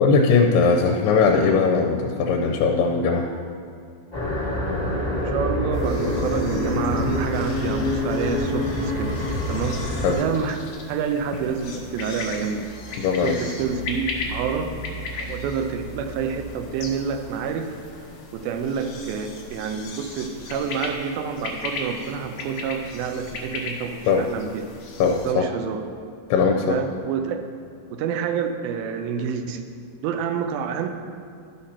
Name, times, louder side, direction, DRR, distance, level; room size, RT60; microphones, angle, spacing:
voice 1, 0.0-3.3 10.0-10.2 13.0-13.4 24.1-24.2 25.0-25.5 26.3-26.8, left 5 dB, 90° left, 2 dB, 2.6 m, -19 dB
sound 1, 4.1-10.1, left 1 dB, 50° left, 0.4 m, -25 dB
voice 2, 5.3-9.8 10.1-10.6 10.9-14.7 15.2-17.8 18.3-24.6 25.2-25.8 26.7-27.4 27.9-29.6 30.0-30.9, right 6 dB, 80° right, 6 dB, 2.3 m, -28 dB
sound 2, 5.7-25.3, left 3 dB, 70° left, 1.6 m, -37 dB
sound 3, 11.1-17.3, right 1 dB, 35° right, 2.8 m, -41 dB
13.0 x 5.7 x 4.3 m, 2.4 s
omnidirectional pair, 4.6 m